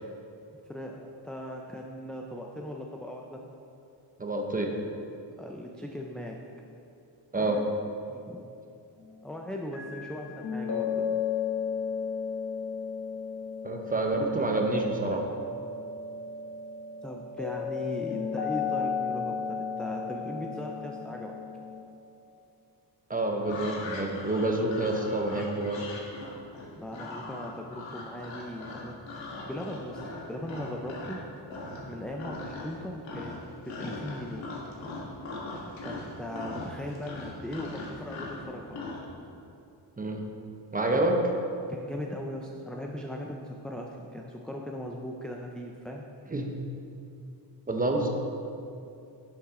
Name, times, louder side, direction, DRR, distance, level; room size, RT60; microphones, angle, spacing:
voice 1, 0.7-3.4 5.4-6.4 7.3-7.6 8.1-8.4 9.2-11.2 17.0-21.4 26.8-30.0 30.3-31.2 31.9-34.5 35.8-38.8 40.9-41.1 41.7-46.0, left 1 dB, ahead, 0 dB, 0.4 m, -39 dB
voice 2, 4.2-4.7 7.3-7.6 13.6-15.3 23.1-25.9 40.0-40.2 40.7-41.2 46.3-46.5 47.7-48.1, right 2 dB, 20° right, 2 dB, 0.9 m, -28 dB
sound 1, 9.7-21.8, left 6 dB, 60° left, 1.5 m, -34 dB
sound 2, 23.4-31.2 31.5-31.9 32.2-32.8 33.0-39.0, left 3 dB, 90° left, 1.9 m, -40 dB
10.5 x 7.3 x 3.7 m, 2.6 s
wide cardioid pair, 145°, 44 cm